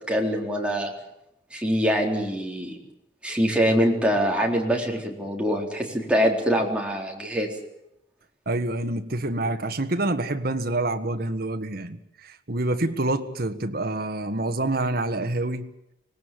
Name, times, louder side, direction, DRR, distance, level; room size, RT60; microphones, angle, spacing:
voice 1, 0.1-0.9 1.5-2.8 3.2-7.5, equal, 5° right, 4.1 m, -24 dB
voice 2, 8.4-15.7, right 2 dB, 55° right, 1.6 m, -27 dB
25.0 x 19.0 x 7.8 m
head